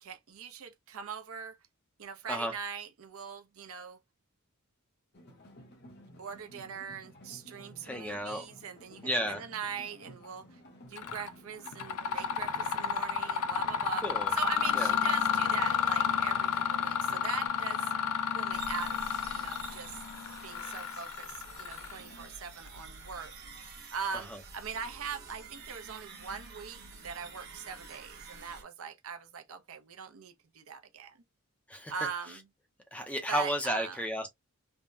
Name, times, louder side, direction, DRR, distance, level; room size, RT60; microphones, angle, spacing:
voice 1, 0.0-1.6 2.0-4.0 6.2-10.6 10.9-14.0 14.3-17.9 18.3-19.0 19.3-20.0 20.4-23.3 23.9-31.2 31.9-32.4 33.3-34.0, right 6 dB, 70° right, 0.6 m, -41 dB
sound 1, 5.1-17.5, equal, 50° left, 0.9 m, -54 dB
voice 2, 7.8-8.5 9.0-9.4 14.0-14.3 14.7-14.9 24.1-24.4 31.7-31.9 32.9-34.3, equal, 5° left, 0.6 m, -33 dB
Mechanisms, 11.0-11.3 11.7-22.2, left 7 dB, 90° left, 0.4 m, -31 dB
sound 2, 18.5-28.6, right 4 dB, 45° right, 0.9 m, -48 dB
3.4 x 2.1 x 2.5 m
head